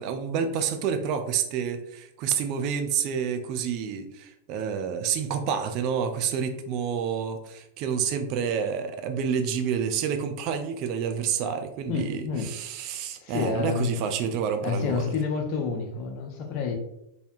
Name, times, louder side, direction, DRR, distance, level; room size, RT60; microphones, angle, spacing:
voice 1, 0.0-15.1, right 7 dB, 40° right, 6 dB, 0.4 m, -29 dB
voice 2, 11.9-12.5 13.2-14.0 14.6-16.7, left 5 dB, 40° left, 4 dB, 0.6 m, -29 dB
3.3 x 2.7 x 2.6 m, 0.83 s
figure-of-eight pair, 90°, 0 cm